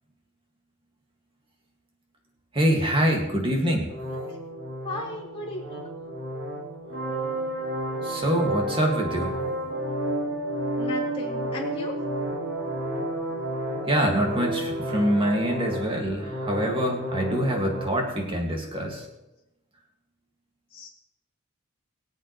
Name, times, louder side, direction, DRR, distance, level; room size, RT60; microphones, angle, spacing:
voice 1, 2.5-3.9 8.0-9.4 13.9-19.1, equal, 25° right, 1 dB, 2.1 m, -25 dB
sound 1, 3.9-17.9, right 1 dB, 60° right, 3.6 m, -31 dB
voice 2, 4.8-5.9 10.8-12.0 20.7-20.9, left 1 dB, 25° left, -4 dB, 3.2 m, -35 dB
22.5 x 8.1 x 3.2 m, 0.94 s
head